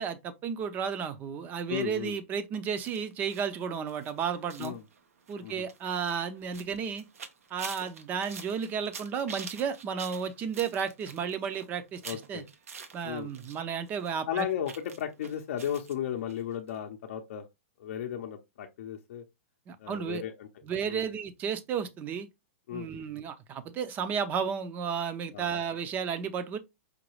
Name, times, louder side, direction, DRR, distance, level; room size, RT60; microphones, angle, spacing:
voice 1, 0.0-4.8 5.3-7.1 7.5-12.4 12.9-14.5 19.7-20.2 20.6-22.3 22.7-26.6, right 7 dB, 20° right, 0.5 m, -33 dB
voice 2, 1.7-2.1 4.6-4.8 5.4-5.6 12.0-12.5 13.0-13.3 14.3-17.4 17.8-19.2 19.8-20.5 20.9-21.0 22.7-23.0 25.3-25.6, left 9 dB, 60° left, 0.6 m, -35 dB
sound 1, 2.7-13.6 13.9-15.9 16.3-16.4 16.7-16.8, right 6 dB, 90° right, 0.8 m, -47 dB
5.0 x 2.2 x 3.1 m
hypercardioid pair, 150°, 8 cm